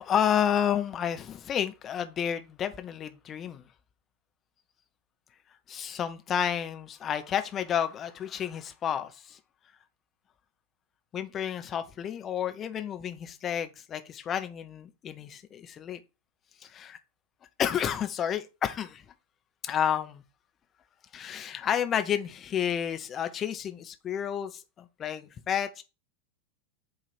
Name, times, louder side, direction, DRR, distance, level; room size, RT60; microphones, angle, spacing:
voice 1, 0.0-3.7 5.7-9.4 11.1-16.0 16.6-17.0 17.6-19.0 19.6-20.2 21.1-25.8, left 9 dB, 25° left, 0.8 m, -31 dB
8.3 x 2.9 x 4.3 m
figure-of-eight pair, 90°, 0 cm